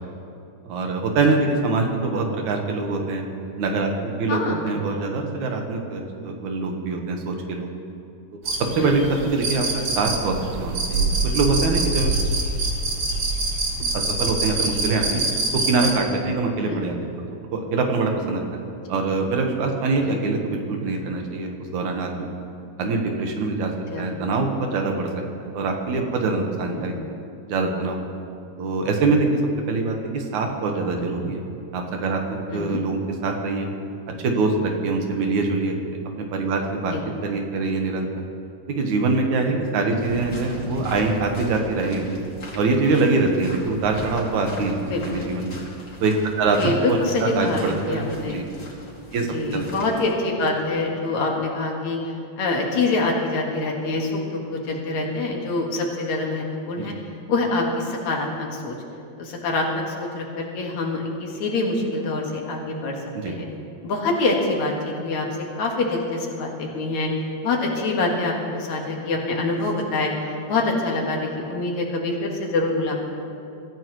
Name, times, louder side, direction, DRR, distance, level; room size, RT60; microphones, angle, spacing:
voice 1, 0.7-3.2 3.6-7.7 8.8-12.2 13.8-15.2 15.7-16.9 17.5-18.6 18.9-22.3 22.8-23.7 24.0-25.1 25.4-26.9 27.5-28.0 28.6-29.4 29.7-31.4 31.7-33.7 34.2-35.8 36.3-36.9 37.2-38.2 38.7-42.2 42.5-44.8 45.0-45.6 46.0-48.5 49.1-49.8 56.8-56.9 63.1-63.3, right 3 dB, 80° right, 2 dB, 2.8 m, -24 dB
voice 2, 4.3-4.6 8.7-8.9 16.6-16.8 18.9-19.0 20.0-20.2 23.9-24.1 26.7-27.0 32.5-32.8 36.9-37.0 39.5-39.7 44.9-45.3 46.6-48.4 49.3-52.0 52.4-56.9 57.3-58.8 59.2-63.0 63.2-63.5 63.8-65.3 65.6-67.1 67.4-73.0, left 2 dB, 75° left, 0 dB, 3.1 m, -25 dB
sound 1, 8.5-15.9, right 2 dB, 55° right, 2.8 m, -25 dB
sound 2, 40.0-50.1, left 1 dB, 35° left, 2.8 m, -38 dB
24.0 x 14.0 x 3.2 m, 2.6 s
omnidirectional pair, 3.3 m